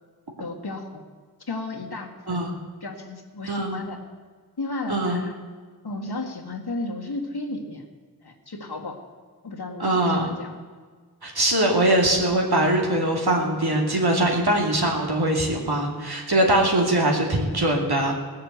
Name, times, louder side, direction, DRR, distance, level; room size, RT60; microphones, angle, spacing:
voice 1, 0.4-1.1 1.5-2.4 2.8-4.0 4.6-5.4 5.8-7.8 8.2-9.0 9.4-10.6, left 2 dB, 85° left, 1 dB, 1.9 m, -33 dB
voice 2, 2.3-2.6 3.5-3.8 4.9-5.2 9.8-10.3 11.2-18.1, right 1 dB, 80° right, 0 dB, 2.5 m, -22 dB
18.5 x 6.6 x 8.0 m, 1.5 s
wide cardioid pair, 60°, 38 cm